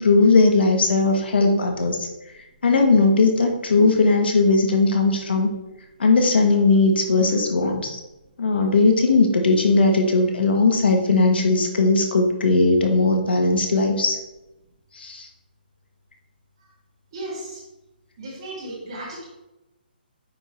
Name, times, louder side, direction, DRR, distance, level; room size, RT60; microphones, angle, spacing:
voice 1, 0.0-2.1 2.6-5.5 6.0-8.0 8.4-14.2 14.9-15.3, left 3 dB, 75° left, 3 dB, 1.3 m, -18 dB
voice 2, 17.1-17.6 18.2-19.2, right 1 dB, 25° right, -6 dB, 2.0 m, -35 dB
9.1 x 3.6 x 3.1 m, 0.97 s
hypercardioid pair, 180°, 6 cm